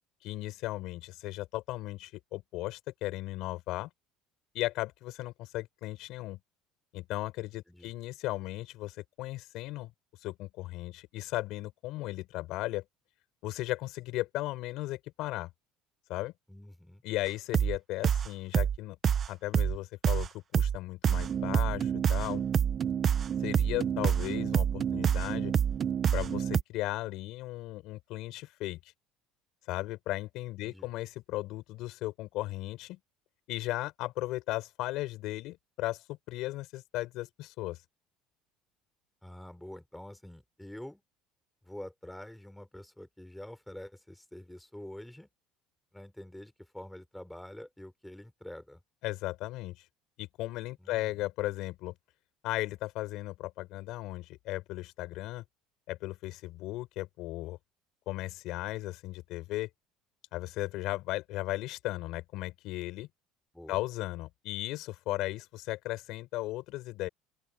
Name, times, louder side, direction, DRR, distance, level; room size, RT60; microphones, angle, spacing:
voice 1, 0.2-3.9 4.5-6.4 6.9-9.9 10.2-12.8 13.4-15.5 16.1-16.3 17.0-19.0 19.3-22.4 23.4-25.5 26.1-28.8 29.7-33.0 33.5-37.8 49.0-49.8 50.2-51.9 52.4-55.4 55.9-57.6 58.1-59.7 60.3-63.1 63.7-67.1, left 18 dB, 70° left, 4.9 m, -36 dB
voice 2, 16.5-17.0 30.6-30.9 39.2-41.0 41.6-45.3 45.9-48.8 50.8-51.3 63.5-63.8, left 1 dB, 5° left, 4.8 m, -46 dB
sound 1, 17.5-17.8 18.0-18.3 18.5-18.8 19.0-19.3 19.5-19.8 20.0-20.3 20.5-20.8 21.0-26.6, right 8 dB, 40° right, 0.7 m, -27 dB
open air
supercardioid pair, 105°, 0 cm